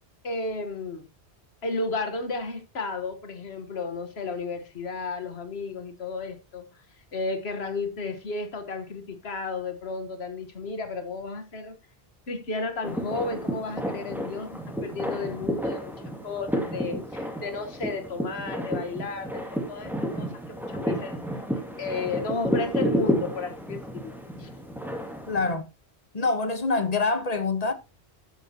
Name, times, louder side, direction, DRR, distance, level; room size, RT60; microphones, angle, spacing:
voice 1, 0.2-1.1 1.6-6.7 7.1-11.8 12.3-15.9 16.2-21.2 21.8-24.5, left 3 dB, 70° left, 1.7 m, -33 dB
sound 1, 12.8-25.5, equal, ahead, 2.3 m, -31 dB
voice 2, 25.3-25.7 26.1-27.7, left 3 dB, 35° left, 1.3 m, -25 dB
12.0 x 8.9 x 2.9 m
omnidirectional pair, 1.1 m